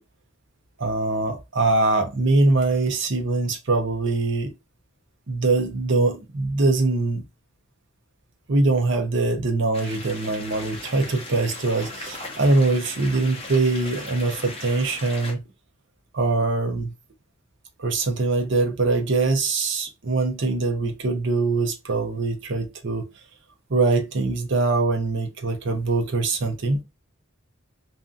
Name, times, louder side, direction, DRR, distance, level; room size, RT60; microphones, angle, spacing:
voice 1, 0.8-4.5 5.3-7.2 8.5-15.4 16.1-16.9 17.8-23.0 23.7-26.8, right 3 dB, 60° right, 0.7 m, -23 dB
sound 1, 9.7-15.3, left 2 dB, 30° left, 0.6 m, -38 dB
2.6 x 2.4 x 2.5 m
head